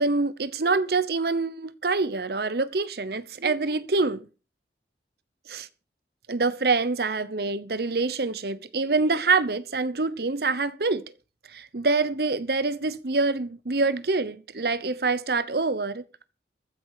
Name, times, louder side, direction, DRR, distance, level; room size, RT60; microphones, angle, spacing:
voice 1, 0.0-4.3 5.5-5.7 6.3-11.1 11.5-16.0, right 3 dB, 60° right, 0.9 m, -26 dB
15.0 x 9.9 x 4.9 m
head